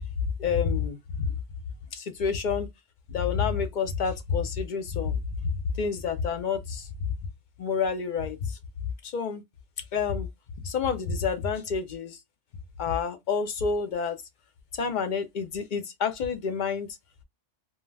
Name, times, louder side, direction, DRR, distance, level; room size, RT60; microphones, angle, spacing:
voice 1, 0.4-1.3 1.9-2.7 3.1-6.9 7.6-8.6 9.0-9.4 9.9-10.3 10.6-12.2 12.8-14.2 14.7-16.9, left 6 dB, 55° left, 0.5 m, -28 dB
2.2 x 2.2 x 3.2 m
omnidirectional pair, 1.2 m